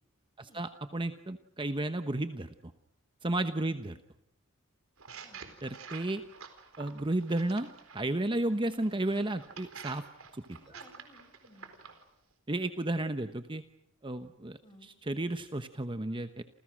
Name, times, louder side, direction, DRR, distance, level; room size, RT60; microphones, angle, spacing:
voice 1, 0.4-2.5 3.2-3.9 5.6-6.2 6.8-7.7 7.9-10.0 10.3-10.6 12.5-13.6 14.0-16.4, right 1 dB, 25° right, 9 dB, 1.0 m, -33 dB
sound 1, 5.0-8.0 8.7-12.0, right 6 dB, 75° right, 4.2 m, -48 dB
voice 2, 10.6-11.7 14.6-14.9, equal, 25° left, 6 dB, 6.7 m, -58 dB
29.5 x 28.5 x 6.3 m, 0.74 s
head